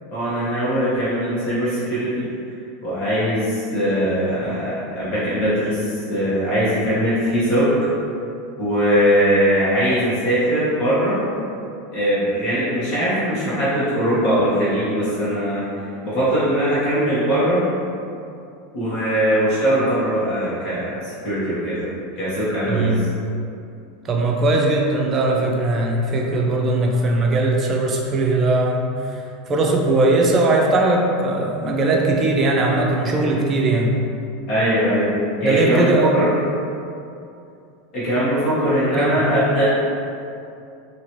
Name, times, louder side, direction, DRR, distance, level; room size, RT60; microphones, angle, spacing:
voice 1, 0.1-2.3 2.8-7.7 8.6-11.2 11.9-15.7 16.0-17.6 18.7-21.9 22.1-22.9 34.5-35.1 35.4-36.3 37.9-39.7, equal, 50° left, -11 dB, 1.5 m, -20 dB
voice 2, 22.7-23.0 24.0-29.1 29.5-34.0 35.4-36.2 39.0-39.2, right 2 dB, 30° right, -1 dB, 0.6 m, -19 dB
2.9 x 2.9 x 3.0 m, 2.5 s
hypercardioid pair, 110°, 0 cm